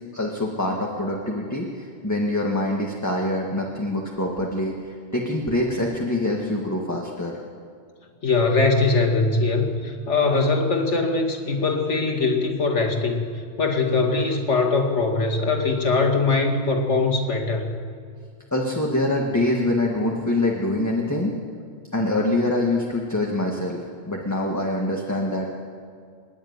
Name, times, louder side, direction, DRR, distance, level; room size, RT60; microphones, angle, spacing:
voice 1, 0.1-7.3 18.5-21.3 21.9-25.5, left 1 dB, 15° left, -1 dB, 1.7 m, -25 dB
voice 2, 8.2-13.3 13.6-17.7, left 3 dB, 65° left, 2 dB, 2.4 m, -21 dB
25.0 x 11.0 x 9.5 m, 2.2 s
omnidirectional pair, 1.3 m